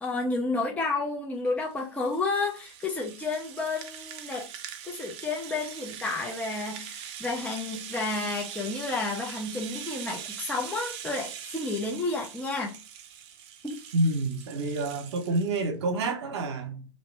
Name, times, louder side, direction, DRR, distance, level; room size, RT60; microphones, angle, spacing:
voice 1, 0.0-4.5 4.8-12.8 13.6-13.8, left 3 dB, 10° left, 0.6 m, -31 dB
Rattle (instrument), 1.5-15.7, right 9 dB, 40° right, 0.5 m, -42 dB
voice 2, 13.9-16.9, right 2 dB, 65° right, 0.9 m, -28 dB
2.8 x 2.6 x 3.2 m
hypercardioid pair, 105°, 15 cm